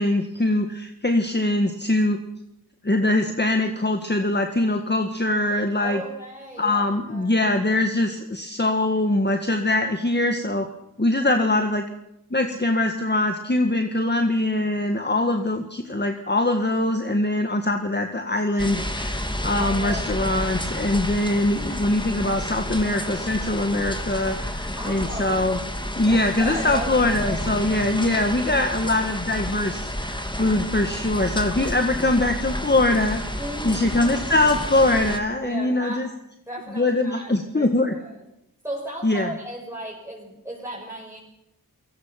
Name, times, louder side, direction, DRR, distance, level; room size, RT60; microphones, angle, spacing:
voice 1, 0.0-2.2 2.8-6.0 6.6-10.7 11.0-11.9 12.3-25.6 26.0-33.2 33.6-36.1 36.8-38.0 39.0-39.3, left 2 dB, 30° left, 5 dB, 1.8 m, -22 dB
voice 2, 5.8-7.4 19.5-20.5 24.7-25.5 26.0-26.9 27.3-27.7 33.4-34.1 35.4-36.0 36.5-38.2 38.6-41.2, equal, 5° right, -4 dB, 6.2 m, -36 dB
sound 1, 18.6-35.2, left 1 dB, 15° left, 2.6 m, -30 dB
29.5 x 17.5 x 6.0 m, 0.85 s
wide cardioid pair, 50°, 37 cm